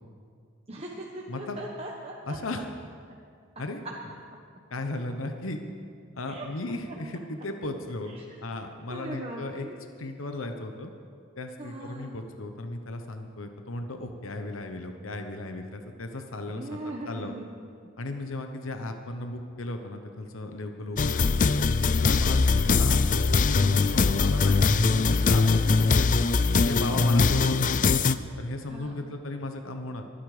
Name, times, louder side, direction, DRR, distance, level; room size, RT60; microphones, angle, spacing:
voice 1, 0.7-2.6 3.5-4.0 6.2-7.0 8.0-8.4 8.9-9.8 11.6-12.2 16.5-17.5 17.8-17.9 28.6-29.0, right 1 dB, 30° right, -2 dB, 1.2 m, -40 dB
voice 2, 2.3-2.7 3.6-3.8 4.7-5.6 6.1-9.7 10.0-10.9 11.4-16.6 17.0-17.3 18.0-21.5 22.0-26.1 26.6-27.9 28.4-30.1, left 2 dB, 85° left, 6 dB, 1.1 m, -35 dB
sound 1, 21.0-28.2, left 4 dB, 40° left, 0.5 m, -22 dB
24.5 x 10.0 x 5.0 m, 2.2 s
head